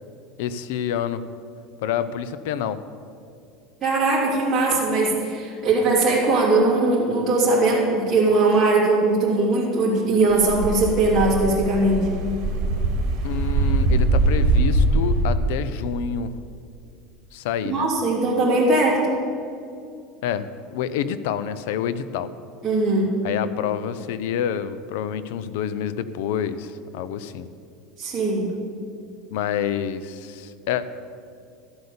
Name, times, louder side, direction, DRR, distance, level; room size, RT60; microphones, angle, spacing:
voice 1, 0.4-1.2 1.8-2.8 13.2-16.3 17.3-17.9 20.2-22.3 23.2-27.5 29.3-31.0, left 9 dB, 75° left, 14 dB, 0.6 m, -28 dB
voice 2, 3.8-12.1 17.6-19.1 22.6-23.1 28.0-28.5, right 2 dB, 15° right, -8 dB, 3.0 m, -20 dB
sound 1, 10.3-15.3, right 2 dB, 50° right, 2.2 m, -22 dB
13.0 x 7.9 x 7.0 m, 2.4 s
supercardioid pair, 155°, 0 cm